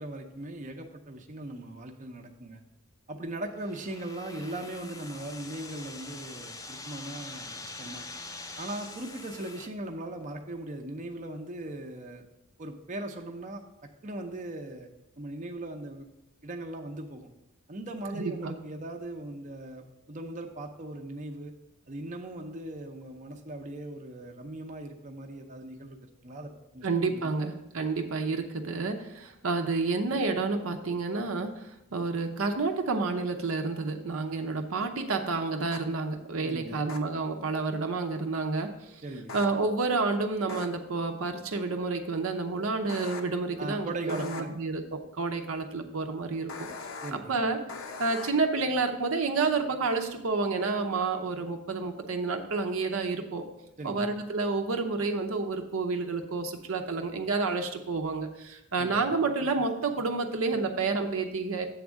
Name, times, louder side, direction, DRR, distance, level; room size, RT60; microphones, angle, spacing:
voice 1, 0.0-2.6 3.1-8.0 8.6-12.2 12.6-13.6 14.0-14.9 15.2-16.0 16.4-17.3 17.7-21.5 21.9-27.4 36.4-36.9 39.0-39.4 43.6-44.5 47.0-47.4 53.8-54.1 58.8-59.1, right 1 dB, 35° right, 3 dB, 0.6 m, -39 dB
sound 1, 3.6-9.7, left 3 dB, 15° left, 0.5 m, -44 dB
voice 2, 18.1-18.6 26.8-31.5 31.9-38.7 39.3-46.7 47.1-47.6 48.0-53.5 53.8-61.7, right 3 dB, 75° right, 5 dB, 0.7 m, -29 dB
sound 2, 35.7-35.8 36.9-37.0 39.3-39.5 40.5-40.7 42.9-43.2 44.1-44.4 46.5-47.1 47.7-48.3, left 4 dB, 70° left, 0.7 m, -39 dB
8.0 x 3.5 x 6.3 m, 0.91 s
head